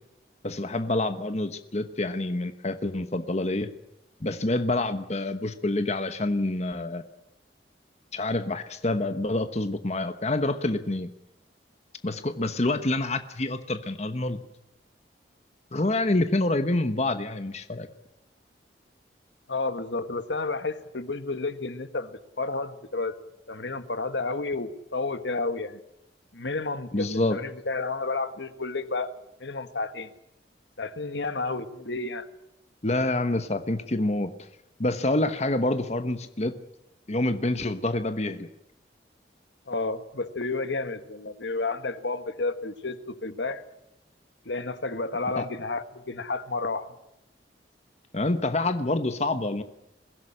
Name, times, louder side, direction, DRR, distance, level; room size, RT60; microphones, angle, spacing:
voice 1, 0.4-3.7 4.2-7.0 8.1-11.1 12.0-14.4 15.7-17.9 26.9-27.4 32.8-34.3 34.8-36.6 37.1-38.5 45.4-45.5 48.1-49.6, left 2 dB, 40° left, 10 dB, 1.1 m, -27 dB
voice 2, 19.5-23.2 23.5-25.8 26.3-29.1 29.4-30.1 30.8-32.3 39.7-43.0 43.2-43.6 44.4-46.9, left 3 dB, 85° left, 10 dB, 1.6 m, -31 dB
22.5 x 16.0 x 10.0 m, 0.86 s
head